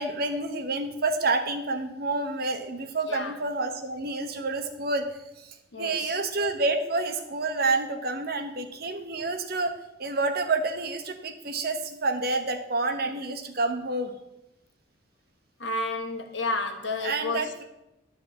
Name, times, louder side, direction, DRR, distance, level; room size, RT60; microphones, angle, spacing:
voice 1, 0.0-5.0 5.4-9.7 10.0-14.1 17.0-17.6, right 3 dB, 55° right, 6 dB, 1.0 m, -28 dB
voice 2, 5.7-6.2 15.6-17.5, left 2 dB, 85° left, 6 dB, 1.2 m, -31 dB
11.0 x 4.2 x 7.2 m, 0.89 s
head